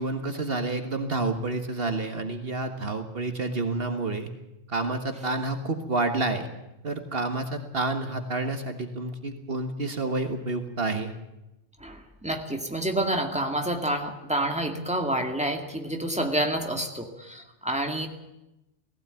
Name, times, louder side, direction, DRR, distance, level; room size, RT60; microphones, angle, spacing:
voice 1, 0.0-4.3 4.7-6.5 6.8-11.1, right 2 dB, 55° right, 6 dB, 1.8 m, -29 dB
voice 2, 11.8-18.1, right 1 dB, 5° right, 3 dB, 2.2 m, -28 dB
18.0 x 16.5 x 9.0 m, 0.93 s
omnidirectional pair, 1.2 m